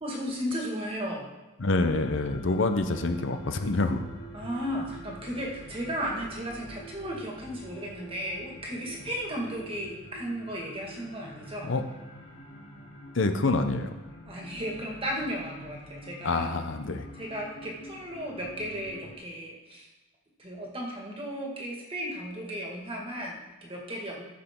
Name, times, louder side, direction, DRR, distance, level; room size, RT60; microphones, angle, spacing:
voice 1, 0.0-1.3 4.3-11.7 14.3-16.5 17.2-19.9 20.4-24.2, equal, 25° right, -1 dB, 1.9 m, -35 dB
voice 2, 1.6-4.1 11.6-11.8 13.1-13.9 16.2-17.1, left 2 dB, 65° left, 7 dB, 0.7 m, -26 dB
sound 1, 1.7-19.2, equal, 85° left, 1.5 m, -46 dB
14.0 x 6.9 x 3.7 m, 1.1 s
head